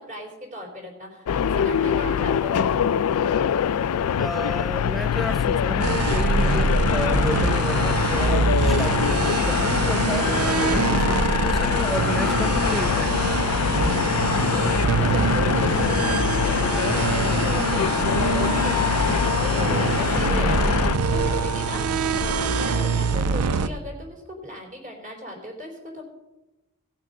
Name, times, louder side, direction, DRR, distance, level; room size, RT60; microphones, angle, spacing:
voice 1, 0.0-2.9 14.1-18.8 19.2-26.0, equal, 35° right, 1 dB, 3.5 m, -36 dB
sound 1, 1.3-21.0, left 8 dB, 75° left, 0.4 m, -24 dB
voice 2, 4.2-13.2, equal, ahead, 11 dB, 0.4 m, -32 dB
sound 2, 5.8-23.7, right 4 dB, 85° right, 0.6 m, -24 dB
17.5 x 6.3 x 5.4 m, 1.0 s
head